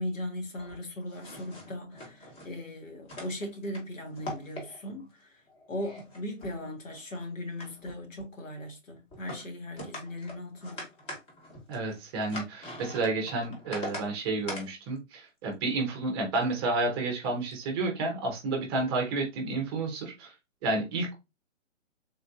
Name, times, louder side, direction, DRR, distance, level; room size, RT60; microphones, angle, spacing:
voice 1, 0.0-5.4 5.7-10.8, left 1 dB, 85° left, 1.3 m, -38 dB
sound 1, 0.5-2.5 3.0-3.8 4.1-5.0 5.5-7.2 7.6-8.2 9.1-9.4 9.8-14.1 14.5-14.7 16.4-16.6 17.2-17.5, left 1 dB, 25° left, 1.1 m, -42 dB
voice 2, 11.7-20.3 20.6-21.1, right 3 dB, 20° right, 0.6 m, -30 dB
3.6 x 2.5 x 2.3 m
hypercardioid pair, 140°, 39 cm